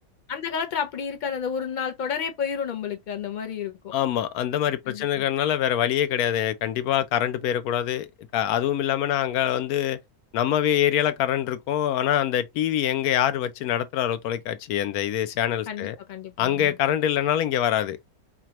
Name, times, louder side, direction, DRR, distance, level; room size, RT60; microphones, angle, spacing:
voice 1, 0.3-3.9 4.9-5.2 15.7-16.7, left 7 dB, 55° left, 0.5 m, -31 dB
voice 2, 3.9-8.1 8.3-10.0 10.3-16.0 16.4-18.0, left 11 dB, 80° left, 1.1 m, -24 dB
4.9 x 2.3 x 2.8 m
omnidirectional pair, 1.6 m